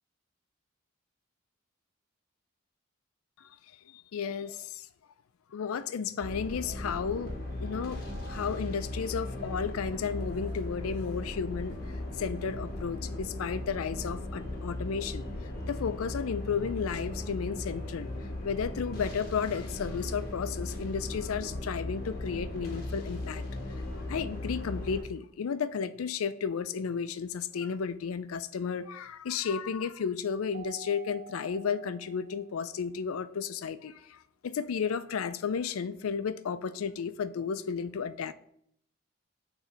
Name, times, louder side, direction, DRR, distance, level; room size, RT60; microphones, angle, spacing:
voice 1, 3.9-4.9 5.5-7.3 7.6-15.3 15.7-18.1 18.4-23.4 24.1-38.3, left 6 dB, 85° left, 0.4 m, -33 dB
sound 1, 6.2-25.0, left 1 dB, 45° left, 1.5 m, -37 dB
Keyboard (musical), 30.5-32.8, right 4 dB, 70° right, 0.7 m, -49 dB
8.8 x 3.2 x 3.9 m
head